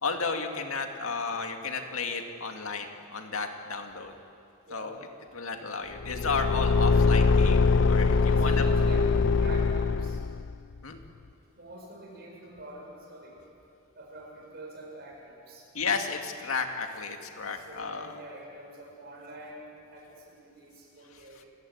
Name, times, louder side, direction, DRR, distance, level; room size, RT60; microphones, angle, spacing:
voice 1, 0.0-4.1 4.7-5.0 5.3-8.6 10.8-11.0 15.7-18.1, left 4 dB, 80° left, 4 dB, 2.2 m, -33 dB
voice 2, 4.7-5.0 8.2-9.1 9.3-10.2 11.6-13.4 13.9-15.6 17.6-21.5, right 1 dB, 50° right, -2 dB, 7.2 m, -46 dB
Car / Engine, 6.0-10.6, left 4 dB, 60° left, 0.5 m, -23 dB
29.0 x 15.5 x 9.5 m, 2.6 s
head